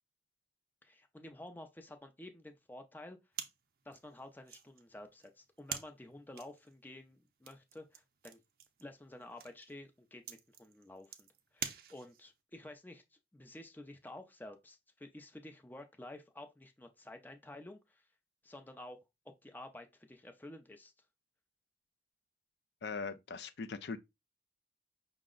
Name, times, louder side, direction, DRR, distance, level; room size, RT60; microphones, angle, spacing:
voice 1, 0.8-3.2 3.9-8.4 8.8-18.0 18.4-20.9, left 1 dB, 10° left, 0.5 m, -51 dB
sound 1, 3.3-12.4, right 8 dB, 55° right, 0.6 m, -48 dB
voice 2, 22.8-24.0, left 4 dB, 70° left, 0.4 m, -40 dB
5.6 x 2.1 x 3.7 m
head